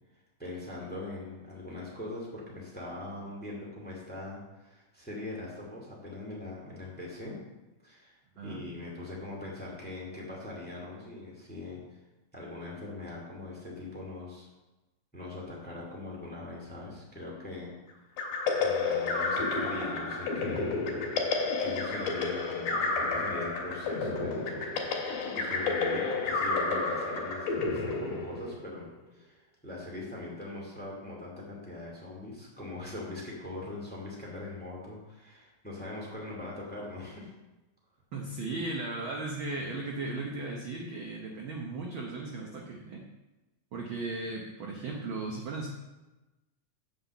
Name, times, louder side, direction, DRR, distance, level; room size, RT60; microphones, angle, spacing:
voice 1, 0.4-7.4 7.8-8.1 8.4-12.0 12.3-14.5 15.1-17.7 18.5-20.8 21.6-24.5 25.3-37.3, left 2 dB, 5° left, -3 dB, 1.6 m, -41 dB
voice 2, 8.4-8.7 38.1-43.0 43.7-45.7, right 3 dB, 70° right, -1 dB, 1.2 m, -36 dB
sound 1, 18.2-28.8, left 3 dB, 60° left, 2.5 m, -31 dB
7.4 x 5.7 x 7.1 m, 1.1 s
omnidirectional pair, 3.6 m